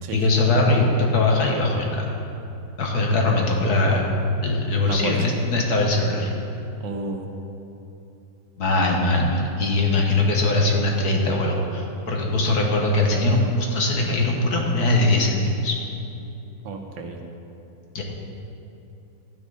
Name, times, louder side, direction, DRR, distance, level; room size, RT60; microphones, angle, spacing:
voice 1, 0.1-2.1 2.8-4.1 4.4-6.3 8.6-15.8 17.9-18.0, left 2 dB, 60° left, 0 dB, 1.7 m, -21 dB
voice 2, 4.8-5.2 6.8-7.3 10.1-10.4 16.6-17.2, right 4 dB, 85° right, 3 dB, 1.7 m, -32 dB
12.5 x 9.8 x 4.0 m, 2.8 s
omnidirectional pair, 2.0 m